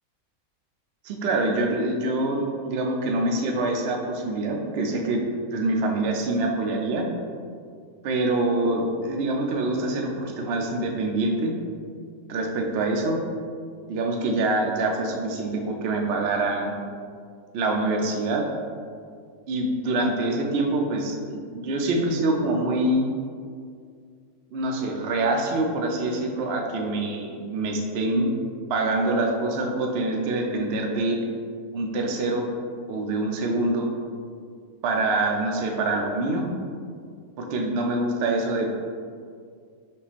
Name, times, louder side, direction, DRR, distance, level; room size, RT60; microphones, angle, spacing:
voice 1, 1.0-5.2 5.5-7.1 8.0-11.5 12.3-13.2 13.9-16.7 17.5-18.5 19.5-23.1 24.5-28.3 28.7-31.2 31.7-32.5 32.9-33.9 34.8-36.5 37.4-38.8, right 2 dB, 60° right, 1 dB, 0.6 m, -25 dB
5.3 x 2.3 x 4.1 m, 2.2 s
omnidirectional pair, 1.6 m